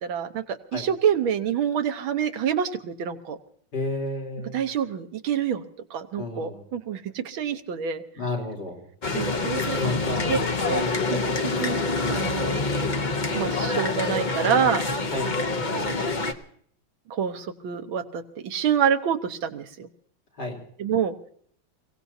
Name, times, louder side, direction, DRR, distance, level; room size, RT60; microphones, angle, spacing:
voice 1, 0.0-3.4 4.5-8.0 9.1-9.8 10.3-10.4 10.7-10.9 11.1-11.8 12.1-12.6 13.3-14.8 15.7-16.0 17.1-19.9 20.8-21.2, right 8 dB, 80° right, 7 dB, 1.8 m, -27 dB
voice 2, 3.7-4.6 6.2-6.6 8.2-8.8 9.6-10.3 15.1-15.3 20.4-20.6, left 2 dB, 55° left, -2 dB, 4.1 m, -31 dB
sound 1, 9.0-16.3, left 3 dB, 40° left, 0.7 m, -26 dB
29.5 x 17.5 x 2.8 m, 0.62 s
omnidirectional pair, 2.2 m